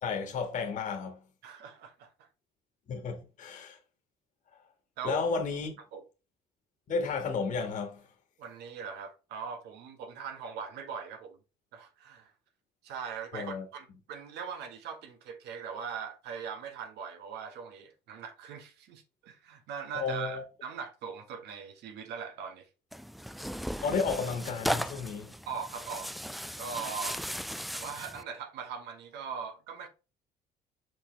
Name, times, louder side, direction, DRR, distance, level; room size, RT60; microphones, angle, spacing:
voice 1, 0.0-1.2 2.9-3.8 5.0-5.7 6.9-8.0 13.3-13.6 19.9-20.4 23.8-25.3, left 5 dB, 50° left, 1.8 m, -32 dB
voice 2, 1.4-2.3 5.0-5.2 5.9-6.0 8.4-11.4 11.7-12.3 12.8-22.7 25.5-26.1 26.6-27.2 27.7-29.9, right 6 dB, 80° right, 1.6 m, -40 dB
Tearing, 22.9-28.2, equal, ahead, 0.3 m, -37 dB
5.5 x 5.4 x 3.3 m
cardioid pair, 110°, 17 cm